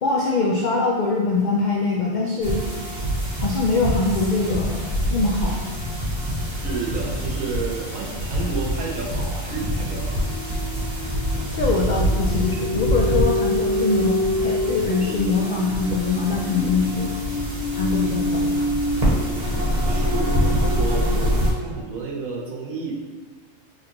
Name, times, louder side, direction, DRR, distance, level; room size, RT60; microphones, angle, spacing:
voice 1, 0.0-2.6 3.4-5.7 11.5-17.1 17.7-18.7 21.0-21.2, left 3 dB, 85° left, -2 dB, 0.4 m, -23 dB
sound 1, 2.4-21.5, equal, 35° right, 1.3 m, -25 dB
voice 2, 6.6-10.2 13.6-13.7 16.1-16.2 18.9-22.9, right 4 dB, 75° right, -1 dB, 1.2 m, -32 dB
sound 2, 7.7-7.8 9.7-20.8, left 1 dB, 60° left, 0.9 m, -28 dB
6.4 x 2.5 x 2.9 m, 1.4 s
omnidirectional pair, 1.4 m